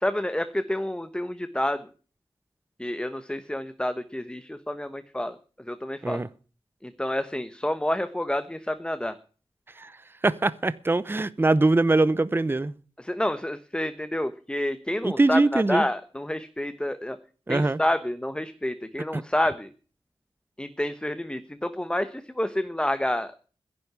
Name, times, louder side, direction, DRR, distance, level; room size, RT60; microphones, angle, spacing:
voice 1, 0.0-1.8 2.8-6.2 6.8-9.1 13.0-17.2 17.5-19.7 20.6-23.4, left 1 dB, 10° left, 11 dB, 1.1 m, -29 dB
voice 2, 10.2-12.7 15.0-15.9 17.5-17.8 19.1-19.2, right 2 dB, 25° right, 17 dB, 0.6 m, -22 dB
11.0 x 8.8 x 9.6 m, 0.40 s
wide cardioid pair, 65°, 10 cm